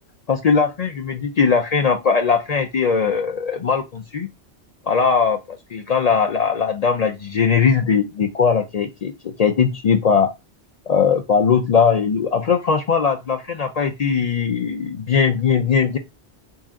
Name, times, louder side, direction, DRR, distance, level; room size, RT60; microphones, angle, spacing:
voice 1, 0.3-4.3 4.9-10.3 10.9-16.0, left 6 dB, 60° left, 5 dB, 0.4 m, -19 dB
4.0 x 2.4 x 3.5 m, 0.24 s
omnidirectional pair, 1.1 m